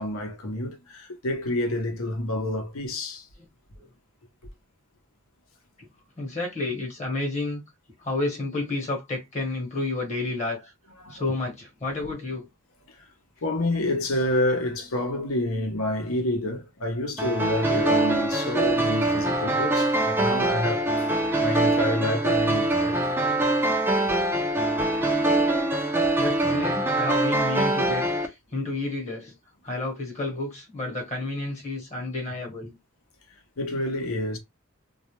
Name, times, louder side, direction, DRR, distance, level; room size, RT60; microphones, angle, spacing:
voice 1, 0.0-3.3 11.0-11.2 12.9-13.0 13.4-23.2 33.6-34.4, left 1 dB, 85° left, 0.7 m, -28 dB
voice 2, 6.2-7.6 8.0-10.7 11.1-12.5 26.2-29.4 29.6-32.8, left 2 dB, 35° left, 1.0 m, -30 dB
sound 1, 17.2-28.3, right 2 dB, 10° right, 0.4 m, -23 dB
2.3 x 2.0 x 2.9 m
head